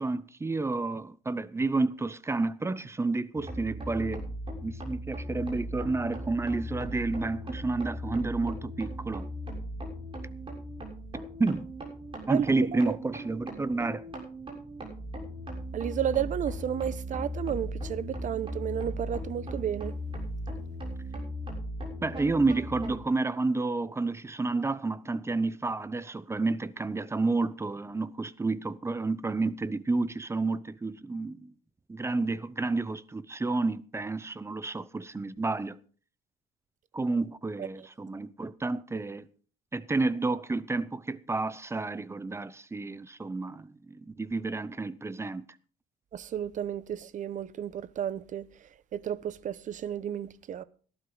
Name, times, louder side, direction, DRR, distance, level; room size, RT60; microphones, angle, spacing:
voice 1, 0.0-4.3 4.6-9.3 11.4-11.7 12.3-14.0 22.0-31.5 31.9-35.8 36.9-39.3 39.7-45.4, right 3 dB, 15° right, 0.8 m, -30 dB
sound 1, 3.4-23.0, equal, 30° right, 6.8 m, -38 dB
voice 2, 15.7-19.9 46.1-48.4 48.9-50.6, right 9 dB, 50° right, 0.9 m, -32 dB
18.0 x 11.5 x 3.9 m
cardioid pair, 110°, 17 cm